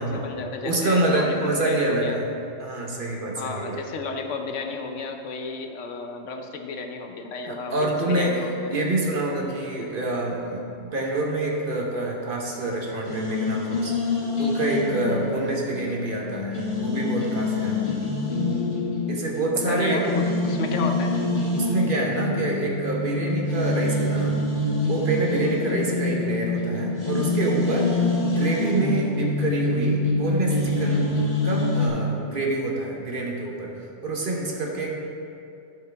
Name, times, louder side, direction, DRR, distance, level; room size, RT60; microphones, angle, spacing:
voice 1, 0.0-2.2 3.4-8.7 19.7-21.1, left 4 dB, 80° left, 5 dB, 1.1 m, -33 dB
voice 2, 0.6-2.3 2.6-3.8 7.4-8.4 8.7-13.9 14.4-17.8 19.1-20.0 21.6-24.3 24.9-31.1 31.4-34.9, right 2 dB, 45° right, -2 dB, 1.3 m, -27 dB
sound 1, 13.0-31.9, left 2 dB, 40° left, 1.6 m, -26 dB
11.5 x 6.8 x 3.4 m, 2.6 s
omnidirectional pair, 1.2 m